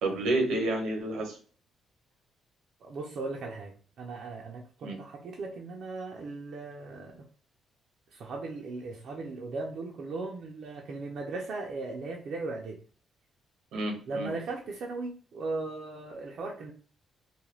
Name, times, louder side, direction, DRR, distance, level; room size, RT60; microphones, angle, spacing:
voice 1, 0.0-1.4 4.8-5.0 13.7-14.3, right 2 dB, 85° right, 2 dB, 0.8 m, -29 dB
voice 2, 2.8-7.3 8.1-12.8 14.1-16.7, right 3 dB, 65° right, -1 dB, 0.5 m, -37 dB
2.4 x 2.2 x 3.1 m, 0.41 s
cardioid pair, 90°, 0 cm